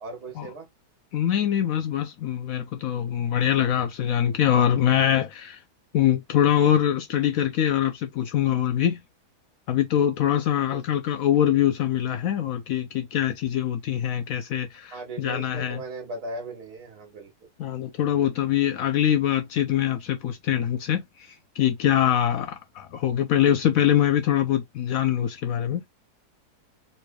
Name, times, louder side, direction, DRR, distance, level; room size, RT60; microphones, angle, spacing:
voice 1, 0.0-0.7 10.7-11.0 14.9-17.3, right 2 dB, 65° right, 1.8 m, -37 dB
voice 2, 1.1-5.6 5.9-9.0 9.7-15.8 17.6-21.3 21.6-25.8, left 10 dB, 70° left, 0.9 m, -23 dB
4.3 x 3.1 x 2.2 m
omnidirectional pair, 1.8 m